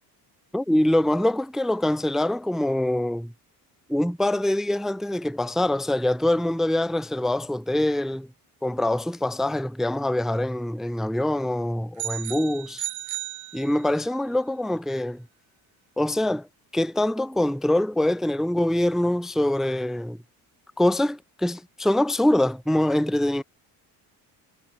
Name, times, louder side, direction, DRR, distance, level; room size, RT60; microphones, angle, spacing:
voice 1, 0.5-3.3 3.9-8.3 8.6-12.8 13.5-15.3 16.0-16.5 16.7-20.2 20.8-23.4, left 1 dB, ahead, 0.4 m, -24 dB
sound 1, 12.0-14.2, right 14 dB, 50° right, 1.8 m, -34 dB
cardioid pair, 180°, 39 cm